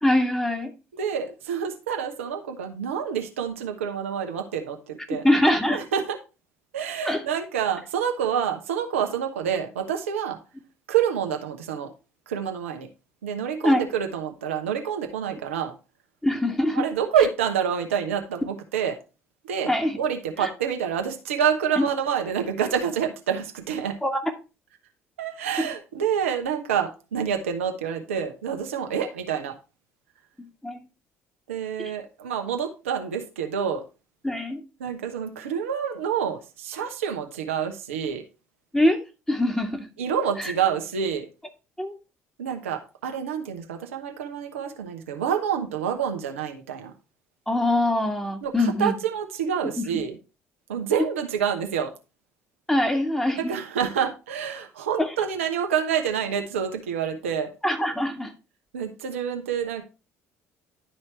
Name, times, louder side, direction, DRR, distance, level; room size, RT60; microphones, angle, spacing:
voice 1, 0.0-0.7 5.2-5.8 7.0-7.2 13.6-13.8 16.2-16.8 19.7-20.0 20.4-20.5 21.8-21.9 24.0-24.2 25.6-25.7 30.6-30.8 31.8-31.9 34.2-34.6 38.7-39.0 39.3-39.9 40.4-40.5 41.8-41.9 47.5-48.9 49.8-49.9 52.7-53.5 55.0-55.1 57.6-58.3, left 1 dB, 5° left, 2.0 m, -23 dB
voice 2, 0.9-5.2 5.7-6.2 6.7-10.4 10.9-11.9 12.3-12.9 13.2-15.7 16.7-19.0 19.4-24.0 25.2-29.5 31.5-33.8 34.8-38.2 40.0-41.3 42.4-46.9 48.4-50.2 50.7-51.9 53.4-57.5 58.7-59.8, right 8 dB, 80° right, 1.1 m, -27 dB
11.5 x 4.4 x 4.3 m
figure-of-eight pair, 55°, 7 cm